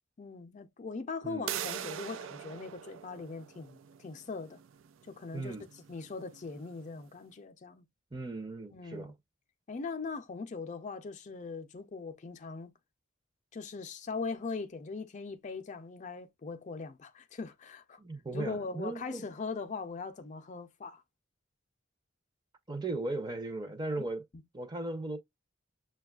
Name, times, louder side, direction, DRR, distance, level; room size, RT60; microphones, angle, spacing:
voice 1, 0.2-4.6 5.1-5.6 5.9-7.9 8.7-9.1 9.7-12.7 13.5-18.0 18.3-21.0, left 4 dB, 40° left, 0.4 m, -40 dB
sound 1, 1.5-7.1, right 10 dB, 90° right, 0.4 m, -43 dB
voice 2, 5.3-5.7 8.1-9.1 18.0-19.3 22.7-24.2 24.5-25.2, right 2 dB, 20° right, 0.6 m, -37 dB
6.6 x 2.3 x 2.3 m
head